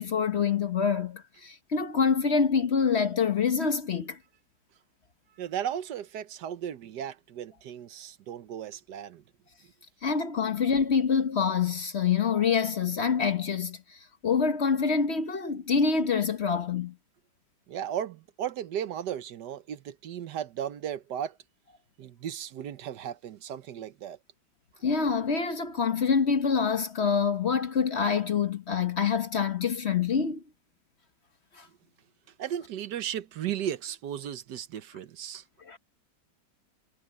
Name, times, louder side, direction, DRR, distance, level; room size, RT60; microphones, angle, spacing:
voice 1, 0.0-4.2 10.0-16.9 24.8-30.4 31.5-31.7 35.6-35.8, left 6 dB, 45° left, 1.1 m, -26 dB
voice 2, 5.4-9.2 17.7-21.4 22.0-24.2 32.4-35.4, right 10 dB, 75° right, 1.5 m, -35 dB
omnidirectional pair, 1.8 m